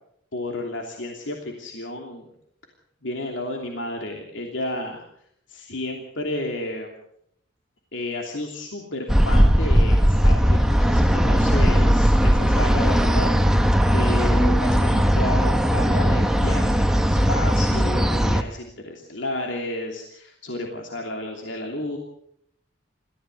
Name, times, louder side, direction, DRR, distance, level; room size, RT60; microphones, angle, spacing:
voice 1, 0.3-2.2 3.0-5.0 5.5-6.9 7.9-22.0, left 1 dB, 85° left, 1 dB, 3.0 m, -32 dB
sound 1, 9.1-18.4, equal, 5° right, 1.0 m, -18 dB
27.5 x 15.0 x 6.8 m, 0.72 s
head